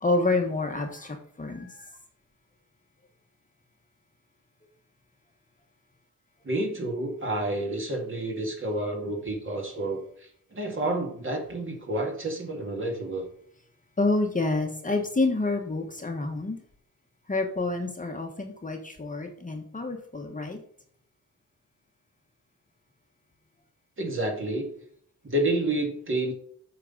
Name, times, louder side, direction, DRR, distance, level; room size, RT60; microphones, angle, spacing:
voice 1, 0.0-1.8 14.0-16.6 17.3-20.6, left 2 dB, 25° left, 3 dB, 1.2 m, -28 dB
voice 2, 6.4-13.3 24.0-24.7 25.2-26.3, right 1 dB, 35° right, 1 dB, 2.1 m, -29 dB
8.4 x 5.8 x 3.9 m, 0.62 s
wide cardioid pair, 130°, 34 cm